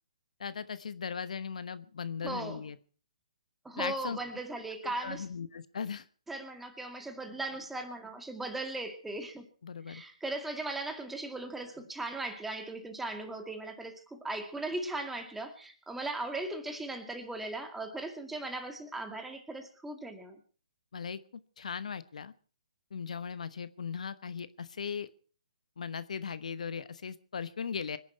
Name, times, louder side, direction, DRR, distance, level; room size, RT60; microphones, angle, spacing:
voice 1, 0.4-2.8 3.8-4.2 5.0-6.0 9.6-10.0 20.9-21.2 21.6-22.3 22.9-25.1 25.8-28.0, left 6 dB, 70° left, 14 dB, 1.1 m, -38 dB
voice 2, 2.2-2.6 3.6-5.3 6.3-9.5 9.9-20.4, right 2 dB, 5° right, 5 dB, 2.2 m, -38 dB
25.0 x 11.0 x 4.6 m, 0.40 s
hypercardioid pair, 145°, 4 cm